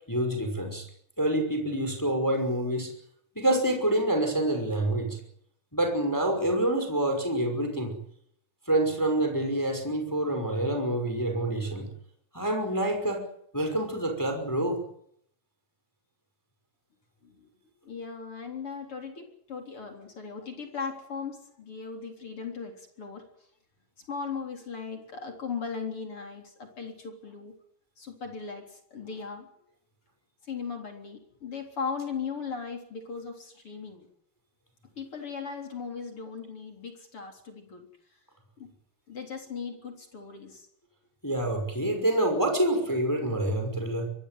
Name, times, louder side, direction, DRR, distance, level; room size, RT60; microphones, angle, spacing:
voice 1, 0.1-0.8 1.2-2.9 3.3-5.2 5.7-7.9 8.7-11.9 12.3-13.2 13.5-14.8 41.2-44.1, right 1 dB, 5° left, 4 dB, 5.1 m, -27 dB
voice 2, 17.8-23.2 24.1-27.5 28.0-29.5 30.5-34.1 35.0-37.9 38.6-38.7 39.1-40.7, left 5 dB, 35° left, 4 dB, 4.3 m, -38 dB
23.5 x 18.5 x 9.4 m, 0.69 s
omnidirectional pair, 4.6 m